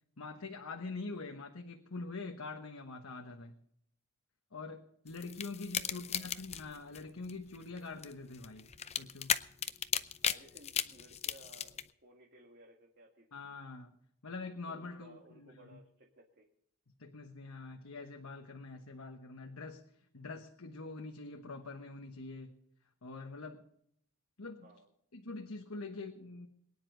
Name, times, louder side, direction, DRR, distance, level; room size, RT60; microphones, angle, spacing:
voice 1, 0.2-3.5 4.5-8.7 9.0-9.3 13.3-13.9 14.2-15.8 17.0-19.8 20.1-22.5 23.0-23.6 24.4-24.7 25.1-26.5, left 3 dB, 65° left, 3 dB, 1.2 m, -44 dB
sound 1, 5.1-11.8, left 8 dB, 30° left, 0.6 m, -36 dB
voice 2, 5.8-6.4 10.2-13.4 14.7-16.5 24.6-24.9, right 1 dB, 45° right, 0 dB, 2.0 m, -59 dB
22.5 x 10.0 x 3.9 m, 0.71 s
head